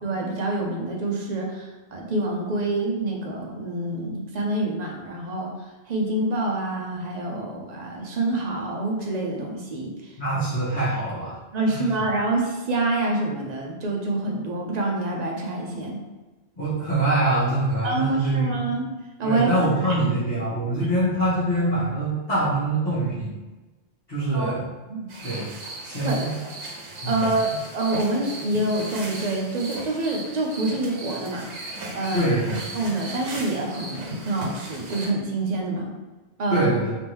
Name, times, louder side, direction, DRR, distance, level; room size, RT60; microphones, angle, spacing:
voice 1, 0.0-5.5 5.9-10.1 11.5-16.0 17.8-18.9 19.2-19.9 24.3-24.5 24.9-25.1 26.0-26.5 27.1-31.5 31.9-32.3 32.7-35.9 36.4-36.7, right 2 dB, 45° right, 0 dB, 0.7 m, -27 dB
voice 2, 10.2-11.4 11.7-11.9 16.6-18.7 19.2-23.3 24.1-24.7 25.2-25.4 25.8-26.3 27.0-27.4 32.1-32.5 36.5-36.9, right 2 dB, 40° left, -13 dB, 1.3 m, -24 dB
sound 1, 25.1-35.1, right 1 dB, 85° right, 1.0 m, -36 dB
3.5 x 3.0 x 3.0 m, 1.2 s
omnidirectional pair, 1.1 m